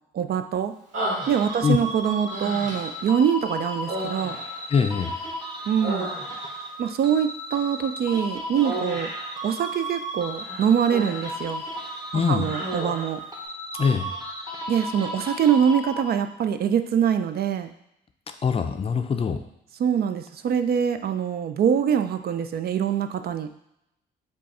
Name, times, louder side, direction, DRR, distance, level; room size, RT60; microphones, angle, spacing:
voice 1, 0.1-0.7 1.3-4.4 5.7-6.1 6.8-9.1 9.4-11.6 12.1-13.2 14.7-17.7 19.8-23.5, right 8 dB, 50° right, 8 dB, 0.4 m, -24 dB
Human voice, 0.9-1.8 2.3-3.0 3.8-5.3 5.6-6.6 8.6-9.3 10.3-11.4 11.7-12.0 12.4-13.2, right 1 dB, 75° right, 1.6 m, -33 dB
sound 1, 1.2-16.4, equal, 20° right, 1.0 m, -35 dB
voice 2, 4.7-5.1 12.1-12.5 13.8-14.1 18.4-19.4, left 6 dB, 30° left, 6 dB, 0.4 m, -22 dB
5.2 x 2.4 x 4.1 m, 0.81 s
cardioid pair, 90°, 20 cm